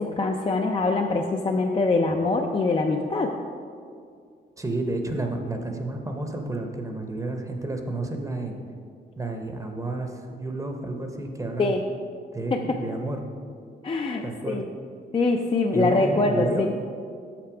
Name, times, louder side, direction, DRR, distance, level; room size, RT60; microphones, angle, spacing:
voice 1, 0.0-3.3 11.6-11.8 12.5-12.6 13.8-14.6 15.1-16.7, left 3 dB, 30° left, 2 dB, 0.4 m, -24 dB
voice 2, 4.6-8.6 9.2-11.7 12.3-13.2 14.2-14.6 15.7-16.7, right 2 dB, 15° right, 3 dB, 0.7 m, -30 dB
6.5 x 5.9 x 4.8 m, 2.2 s
cardioid pair, 105°, 18 cm